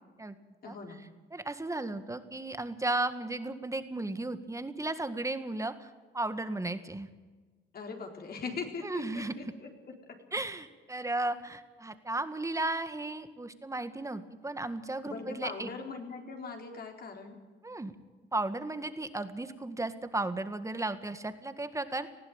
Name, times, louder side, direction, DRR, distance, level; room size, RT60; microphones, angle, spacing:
voice 1, 0.6-1.1 7.7-9.7 10.1-10.2 15.0-17.4, left 4 dB, 50° left, 2 dB, 4.0 m, -41 dB
voice 2, 1.3-5.9 6.1-7.1 8.8-9.3 10.3-15.7 17.6-17.9 18.3-22.1, right 2 dB, 15° right, 10 dB, 1.8 m, -35 dB
20.0 x 15.0 x 8.9 m, 1.4 s
cardioid pair, 90°, 20 cm